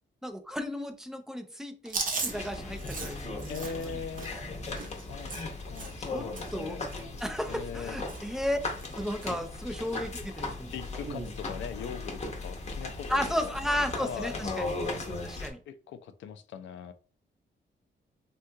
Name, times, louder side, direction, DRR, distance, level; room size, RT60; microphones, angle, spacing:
voice 1, 0.2-4.0 5.7-5.8 6.1-6.3 6.5-6.8 7.2-8.6 9.0-10.7 13.1-14.8 15.2-15.6, left 1 dB, 5° right, 7 dB, 0.3 m, -34 dB
Chewing mastication, 1.8-6.1 6.3-6.6 6.9-8.4 8.6-9.3 9.7-9.9 10.9-11.3, right 4 dB, 45° right, 0.7 m, -38 dB
sound 1, 2.3-15.5, left 3 dB, 35° left, 0.7 m, -38 dB
voice 2, 3.5-4.3 5.1-6.8 7.5-8.0 9.3-9.4 10.7-13.5 14.0-14.4 15.7-16.9, left 7 dB, 85° left, 10 dB, 0.4 m, -40 dB
3.6 x 2.3 x 2.7 m, 0.39 s
wide cardioid pair, 165°, 19 cm